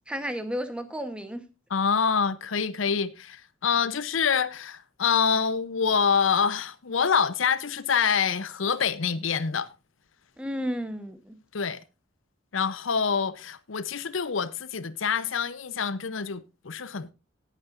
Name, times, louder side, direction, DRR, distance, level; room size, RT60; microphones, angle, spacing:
voice 1, 0.1-1.4 10.4-11.4, equal, 5° right, 1.0 m, -32 dB
voice 2, 1.7-9.7 11.5-11.8 12.5-17.1, left 6 dB, 75° left, 0.7 m, -26 dB
18.5 x 8.4 x 2.5 m
head